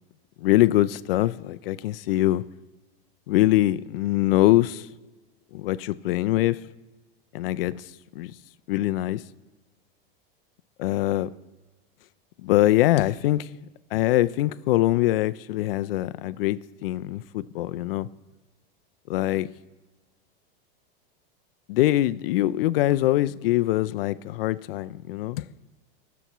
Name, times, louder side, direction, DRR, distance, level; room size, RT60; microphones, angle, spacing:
voice 1, 0.4-2.4 3.3-4.9 5.5-6.6 7.3-7.9 8.2-8.3 8.7-9.2 10.8-11.3 12.4-13.6 13.9-18.1 19.1-19.5 21.7-25.5, left 15 dB, 70° left, 0.5 m, -23 dB
20.0 x 7.0 x 3.0 m
supercardioid pair, 165°, 30 cm